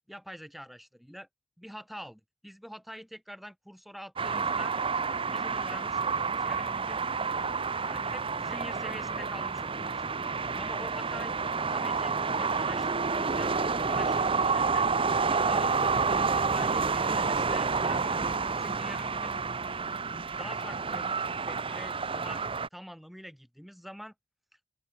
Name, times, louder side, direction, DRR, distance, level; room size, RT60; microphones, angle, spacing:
voice 1, 0.1-1.3 1.6-4.8 5.3-7.0 7.9-10.0 10.6-11.3 11.7-14.9 15.3-19.7 20.1-21.1 21.4-24.1, equal, ahead, 2.8 m, -46 dB
sound 1, 4.2-22.7, right 5 dB, 30° right, 0.9 m, -29 dB
open air
head